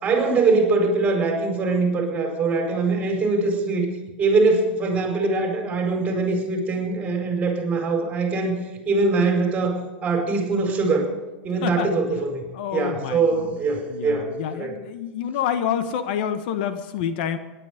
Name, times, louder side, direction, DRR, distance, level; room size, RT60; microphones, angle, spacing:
voice 1, 0.0-3.9 4.2-11.1 11.4-12.4 12.7-14.3 14.6-14.7, right 3 dB, 25° right, 3 dB, 4.8 m, -22 dB
voice 2, 11.6-12.0 12.5-13.6 13.9-17.4, left 9 dB, 60° left, 11 dB, 1.3 m, -28 dB
18.0 x 11.0 x 5.1 m, 1.2 s
hypercardioid pair, 120°, 6 cm